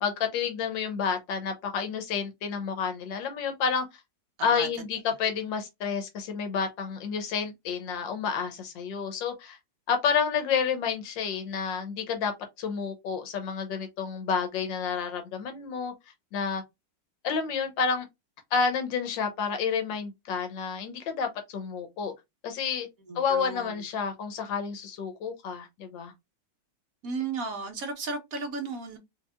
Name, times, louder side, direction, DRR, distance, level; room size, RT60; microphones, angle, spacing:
voice 1, 0.0-3.8 4.4-9.6 9.9-12.3 12.6-15.9 16.3-16.6 17.2-18.1 18.5-22.1 22.4-22.9 23.1-26.1, left 6 dB, 90° left, 1.6 m, -30 dB
voice 2, 23.1-23.7 27.0-29.0, right 4 dB, 55° right, 1.4 m, -34 dB
4.6 x 2.9 x 2.3 m
omnidirectional pair, 2.0 m